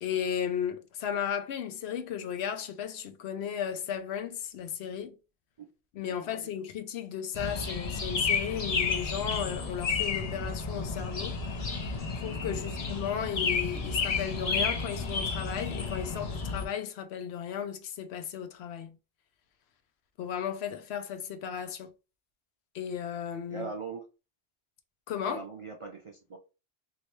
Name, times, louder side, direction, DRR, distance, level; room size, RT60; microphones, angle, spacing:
voice 1, 0.0-5.2 5.9-11.4 12.2-19.0 20.2-21.9 22.7-23.7 25.1-25.5, left 8 dB, 80° left, 0.8 m, -35 dB
voice 2, 6.1-6.5 12.5-12.8 23.5-24.0 25.3-26.4, right 5 dB, 55° right, 0.3 m, -41 dB
sound 1, 7.3-16.7, left 4 dB, 45° left, 0.5 m, -31 dB
3.2 x 2.6 x 3.0 m
omnidirectional pair, 1.1 m